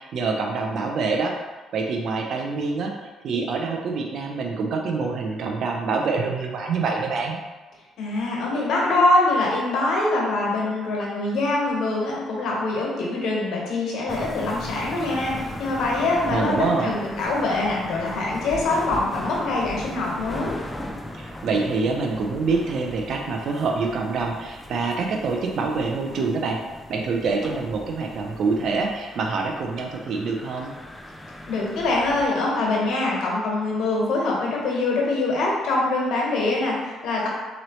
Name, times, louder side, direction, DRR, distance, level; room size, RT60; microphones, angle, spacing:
voice 1, 0.0-1.3 1.7-2.9 3.2-7.4 16.3-16.9 21.2-26.6 26.9-30.7, right 4 dB, 65° right, 1 dB, 0.5 m, -26 dB
voice 2, 8.0-20.6 31.5-37.3, left 2 dB, 70° left, -3 dB, 1.2 m, -24 dB
sound 1, 14.1-32.3, left 1 dB, 15° left, 0.4 m, -38 dB
3.8 x 3.0 x 3.1 m, 1.2 s
cardioid pair, 80°, 0 cm